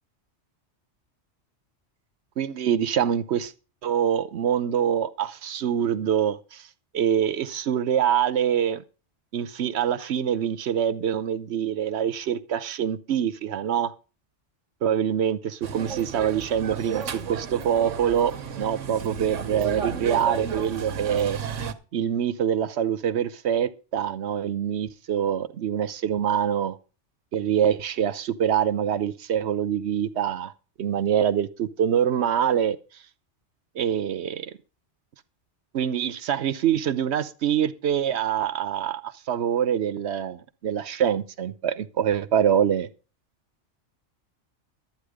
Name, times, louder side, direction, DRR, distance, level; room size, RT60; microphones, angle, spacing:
voice 1, 2.4-3.5 3.8-6.6 6.9-8.8 9.3-13.9 14.8-21.4 21.9-26.8 27.3-30.5 30.8-32.8 33.8-34.5 35.7-42.9, right 9 dB, 65° right, 1.0 m, -25 dB
sound 1, 15.6-21.7, right 6 dB, 85° right, 1.3 m, -33 dB
12.0 x 9.0 x 5.0 m
omnidirectional pair, 1.2 m